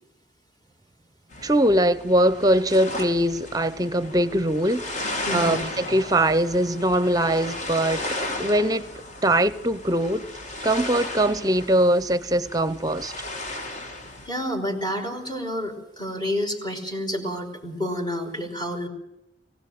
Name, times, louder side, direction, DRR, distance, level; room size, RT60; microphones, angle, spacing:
sound 1, 1.3-14.3, left 2 dB, 45° left, 2.8 m, -35 dB
voice 1, 1.4-8.0 8.4-8.8 9.2-10.3 10.6-13.1, right 1 dB, 20° right, 0.9 m, -22 dB
voice 2, 5.3-5.6 14.3-18.9, equal, 25° left, 5.1 m, -29 dB
23.5 x 17.0 x 7.9 m
head